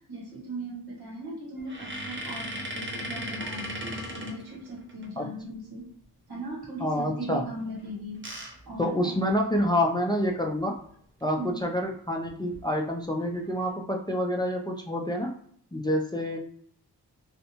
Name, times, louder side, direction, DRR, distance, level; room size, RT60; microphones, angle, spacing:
voice 1, 0.1-5.9 6.3-8.3 8.6-9.2 11.3-11.6, right 1 dB, 70° right, -3 dB, 1.1 m, -38 dB
sound 1, 1.6-5.1 7.8-9.7 10.2-10.3 10.6-10.8 12.3-12.6 13.2-13.7, equal, 30° right, 0.7 m, -38 dB
voice 2, 6.8-7.5 8.8-10.8 11.2-15.3 15.7-16.4, equal, 10° left, 2 dB, 0.4 m, -27 dB
2.5 x 2.1 x 2.9 m, 0.63 s
cardioid pair, 50°, 39 cm